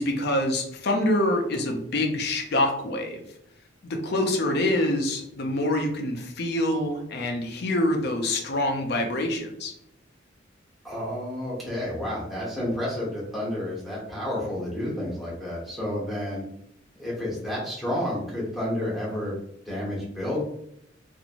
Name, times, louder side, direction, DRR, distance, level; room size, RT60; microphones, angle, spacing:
voice 1, 0.0-3.2 3.8-9.7, left 1 dB, 55° left, 3 dB, 0.6 m, -26 dB
voice 2, 10.8-16.4 16.9-19.3 19.6-20.4, left 1 dB, ahead, -7 dB, 1.1 m, -30 dB
2.9 x 2.5 x 2.5 m, 0.74 s
head